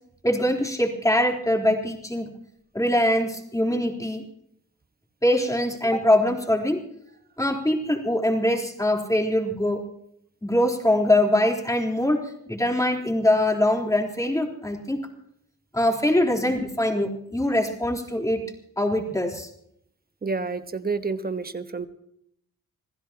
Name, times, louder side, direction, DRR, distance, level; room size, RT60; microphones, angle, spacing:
voice 1, 0.2-2.3 2.7-4.2 5.2-6.8 7.4-9.8 10.4-15.1 15.7-18.4 18.8-19.5, left 1 dB, 10° left, 1 dB, 3.9 m, -23 dB
voice 2, 20.2-21.9, right 4 dB, 30° right, 10 dB, 1.3 m, -29 dB
27.0 x 15.5 x 3.0 m, 0.71 s
cardioid pair, 85°, 30 cm